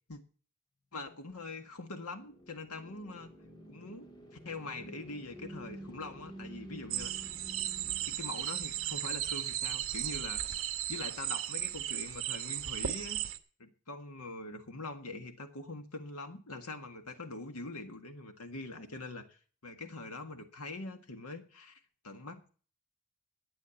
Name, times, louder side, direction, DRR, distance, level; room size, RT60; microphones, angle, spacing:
voice 1, 0.9-3.3 3.7-7.1 7.8-10.6 10.9-13.2 13.6-22.5, left 2 dB, 90° left, 7 dB, 1.7 m, -44 dB
sound 1, 1.6-10.5, equal, 20° left, 1.9 m, -51 dB
sound 2, 6.9-13.4, right 12 dB, 65° right, 1.0 m, -36 dB
12.0 x 8.9 x 7.1 m, 0.41 s
head